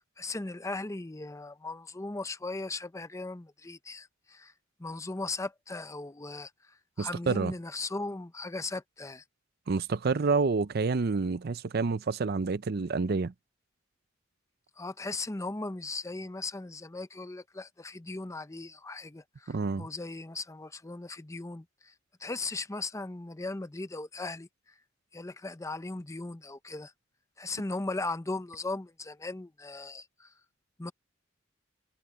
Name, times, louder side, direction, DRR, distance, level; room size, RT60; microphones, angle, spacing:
voice 1, 0.2-4.5 4.8-6.5 7.0-9.2 14.8-21.9 22.2-24.5 25.1-26.9 27.4-30.3 30.8-30.9, left 3 dB, 15° left, 0.6 m, -38 dB
voice 2, 7.0-7.5 9.7-13.3 19.5-19.9, right 4 dB, 55° right, 0.5 m, -28 dB
head